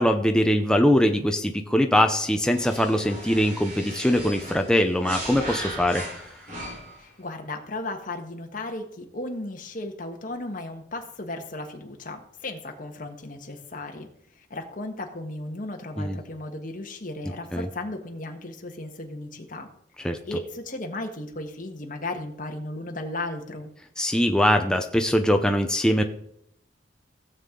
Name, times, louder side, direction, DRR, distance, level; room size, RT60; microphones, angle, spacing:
voice 1, 0.0-6.3 16.0-16.2 17.5-17.7 20.0-20.2 24.0-26.0, equal, 5° left, 4 dB, 0.6 m, -22 dB
sound 1, 2.5-7.1, right 1 dB, 50° right, 4.7 m, -37 dB
voice 2, 7.0-14.1 14.3-19.7 20.3-23.7, left 2 dB, 45° left, 3 dB, 1.4 m, -35 dB
16.0 x 7.4 x 3.8 m, 0.73 s
head